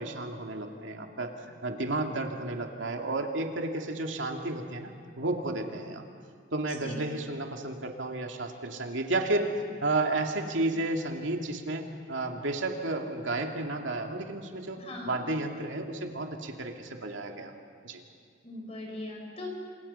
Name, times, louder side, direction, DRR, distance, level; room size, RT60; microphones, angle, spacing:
voice 1, 0.0-4.9 5.2-6.0 6.5-9.5 9.8-17.5 17.8-18.0, right 2 dB, 90° right, 2 dB, 2.5 m, -32 dB
voice 2, 14.7-15.2 18.4-19.5, left 1 dB, 35° left, 0 dB, 5.8 m, -40 dB
30.0 x 26.5 x 5.7 m, 2.1 s
head